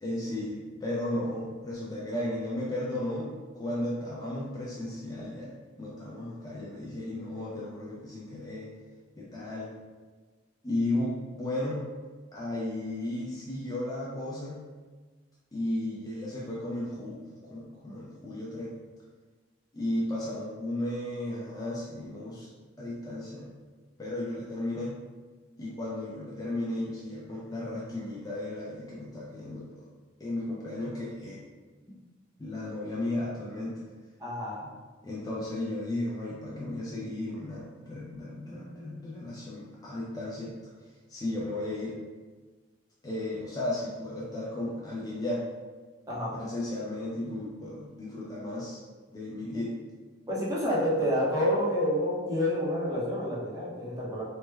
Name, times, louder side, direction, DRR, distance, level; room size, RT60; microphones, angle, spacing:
voice 1, 0.0-5.5 5.8-8.7 9.2-9.7 10.6-11.8 12.3-14.6 15.5-18.7 19.7-22.5 22.8-23.5 24.0-24.9 25.6-29.8 30.2-31.4 31.9-32.0 32.4-33.8 35.0-40.5 41.1-42.0 43.0-45.5 46.3-48.8 49.1-49.7, left 1 dB, 20° left, -6 dB, 0.4 m, -34 dB
voice 2, 34.2-34.7 46.1-46.3 50.3-54.2, equal, 15° right, -6 dB, 0.6 m, -28 dB
3.2 x 2.1 x 3.2 m, 1.4 s
head